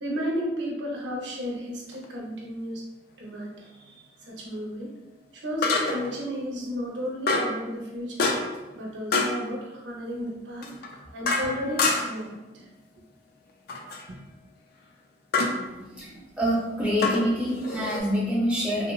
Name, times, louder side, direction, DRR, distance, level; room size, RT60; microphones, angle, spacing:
voice 1, 0.0-2.8 3.2-4.9 5.3-8.3 8.7-10.7 11.1-12.7 14.1-14.2 15.3-15.9, equal, 75° right, -2 dB, 0.6 m, -33 dB
sound 1, 1.9-2.0 5.6-6.2 7.3-7.6 8.2-8.6 9.1-9.4 10.6-12.2 13.7-14.1 15.3-15.6 17.0-18.0, left 3 dB, 55° left, 0.3 m, -26 dB
voice 2, 16.4-18.9, equal, 5° right, -7 dB, 0.8 m, -25 dB
3.1 x 2.1 x 2.3 m, 1.1 s
head